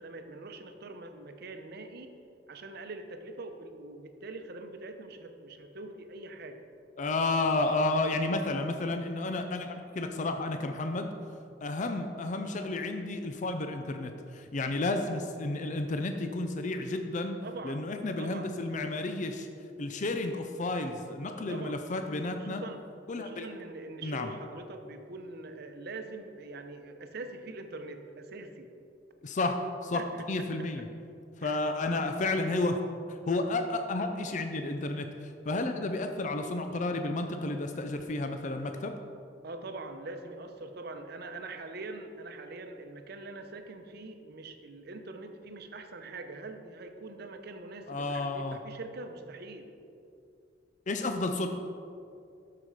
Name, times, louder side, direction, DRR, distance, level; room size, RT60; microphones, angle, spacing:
voice 1, 0.0-2.1 2.5-6.6 17.4-17.9 18.2-18.5 21.5-21.8 22.3-22.9 23.2-28.7 29.9-30.8 31.4-31.6 39.4-49.7, right 2 dB, 60° right, 6 dB, 0.8 m, -43 dB
voice 2, 7.0-11.1 11.6-17.4 17.6-19.5 19.8-22.6 23.1-23.5 24.0-24.3 29.2-30.0 30.3-30.9 31.4-32.8 33.1-39.0 47.9-48.6 50.9-51.5, left 2 dB, 40° left, 6 dB, 0.5 m, -31 dB
9.6 x 6.8 x 4.8 m, 2.5 s
head